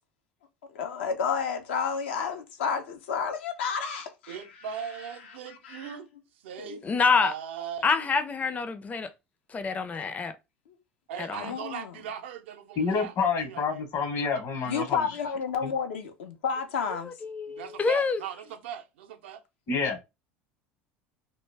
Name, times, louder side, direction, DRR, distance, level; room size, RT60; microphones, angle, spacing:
voice 1, 0.7-4.4 5.5-6.0 6.6-6.8 11.4-11.9 14.7-17.1, left 6 dB, 85° left, 0.6 m, -31 dB
voice 2, 4.3-6.1 6.4-6.8 7.2-8.0 11.1-13.9 17.5-19.4, right 8 dB, 80° right, 0.4 m, -39 dB
voice 3, 6.8-7.3 7.8-9.1 9.5-10.3 11.2-11.5 17.2-18.2, left 5 dB, 25° left, 0.4 m, -26 dB
voice 4, 12.8-15.1 15.6-15.7 19.7-20.0, left 5 dB, 55° left, 1.0 m, -28 dB
2.1 x 2.0 x 3.3 m
hypercardioid pair, 85°, 6 cm